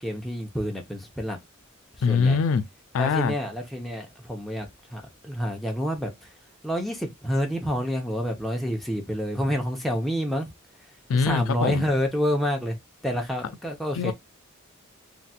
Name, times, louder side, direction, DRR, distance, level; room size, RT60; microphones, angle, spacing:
voice 1, 0.0-1.4 2.1-2.4 3.0-6.1 6.6-10.5 11.1-12.8 13.0-14.1, equal, ahead, 0.8 m, -28 dB
voice 2, 2.0-2.7 2.9-3.3 11.1-11.9 13.9-14.1, left 5 dB, 70° left, 0.3 m, -23 dB
3.2 x 2.8 x 2.3 m
head